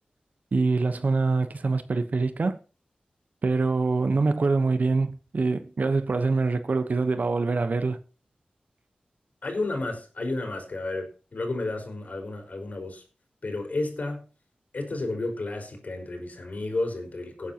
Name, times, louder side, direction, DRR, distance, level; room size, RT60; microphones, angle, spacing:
voice 1, 0.5-2.6 3.4-8.0, right 3 dB, 60° right, 1.1 m, -24 dB
voice 2, 9.4-13.0 13.4-14.3 14.7-17.5, left 2 dB, 60° left, 4.9 m, -32 dB
18.0 x 10.0 x 3.0 m
wide cardioid pair, 80°, 3 cm